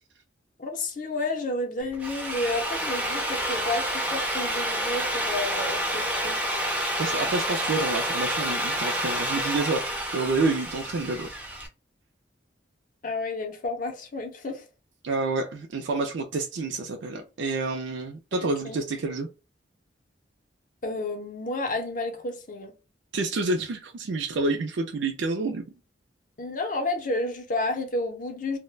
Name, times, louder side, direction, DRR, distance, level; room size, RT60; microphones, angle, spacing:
voice 1, 0.6-6.4 13.0-14.7 18.3-18.8 20.8-22.7 26.4-28.6, left 2 dB, 45° left, 0.5 m, -31 dB
Drill, 1.8-11.7, equal, 10° right, 0.4 m, -29 dB
voice 2, 7.0-9.8 10.1-11.3 15.0-19.3 23.1-25.7, right 3 dB, 75° right, 0.4 m, -28 dB
2.3 x 2.0 x 3.1 m
head